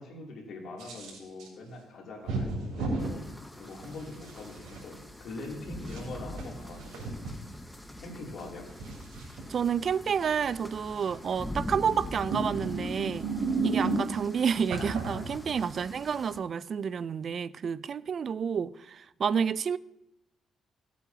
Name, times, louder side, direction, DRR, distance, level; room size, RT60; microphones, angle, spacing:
voice 1, 0.0-7.1 8.0-8.7, left 2 dB, 70° left, 2.7 m, -43 dB
sound 1, 0.8-1.5 2.3-3.1 3.8-4.8 5.8-7.3 8.4-9.4 10.9-11.3 12.1-14.3 14.7-15.8, right 3 dB, 85° right, 3.2 m, -33 dB
sound 2, 3.0-16.4, left 1 dB, 5° left, 0.9 m, -43 dB
voice 2, 9.5-13.3 13.6-19.8, right 7 dB, 50° right, 0.3 m, -29 dB
16.5 x 8.2 x 2.8 m
cardioid pair, 90°, 0 cm